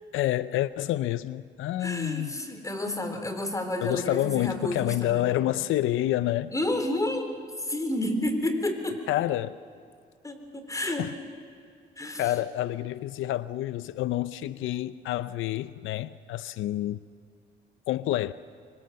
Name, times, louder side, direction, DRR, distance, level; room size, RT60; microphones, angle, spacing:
voice 1, 0.1-2.4 3.8-6.5 9.1-9.6 10.9-11.1 12.2-17.0 17.9-18.3, left 14 dB, 85° left, 0.6 m, -28 dB
voice 2, 1.8-5.3 6.5-7.3 7.6-9.0 10.2-11.1 12.0-12.3, left 1 dB, 15° left, 4.0 m, -30 dB
25.0 x 24.5 x 7.7 m
cardioid pair, 90°, 20 cm